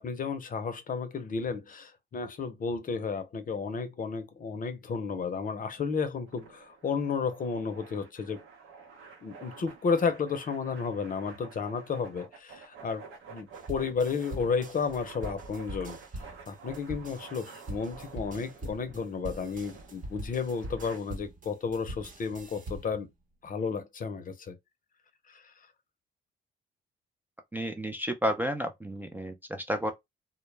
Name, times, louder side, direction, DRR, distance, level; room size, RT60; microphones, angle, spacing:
voice 1, 0.0-8.4 9.2-23.1 23.4-24.6 25.3-25.5, left 5 dB, 45° left, 0.6 m, -32 dB
sound 1, 6.3-21.0, right 5 dB, 85° right, 0.8 m, -50 dB
sound 2, 13.5-23.0, right 1 dB, 40° right, 0.9 m, -43 dB
voice 2, 27.5-29.9, equal, 10° right, 0.4 m, -31 dB
2.1 x 2.1 x 3.1 m
cardioid pair, 90°, 20 cm